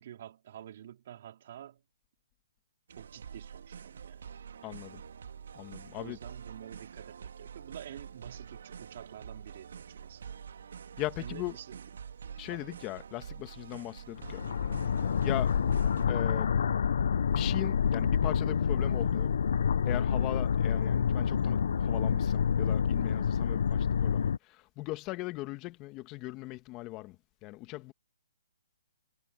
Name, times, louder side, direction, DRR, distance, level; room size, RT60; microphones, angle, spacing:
voice 1, 0.0-1.8 3.0-4.4 5.9-10.3 11.2-11.9 12.5-12.6 15.9-16.1, right 10 dB, 45° right, 3.2 m, -48 dB
sound 1, 2.9-16.1, right 7 dB, 65° right, 2.3 m, -47 dB
voice 2, 4.6-5.0 5.5-6.2 11.0-11.5 12.4-14.4 15.2-15.5 16.1-16.5 17.3-19.3 19.9-27.2 27.4-27.9, left 19 dB, 20° left, 1.7 m, -39 dB
sound 2, 14.2-24.4, left 7 dB, 65° left, 0.6 m, -28 dB
hypercardioid pair, 160°, 0 cm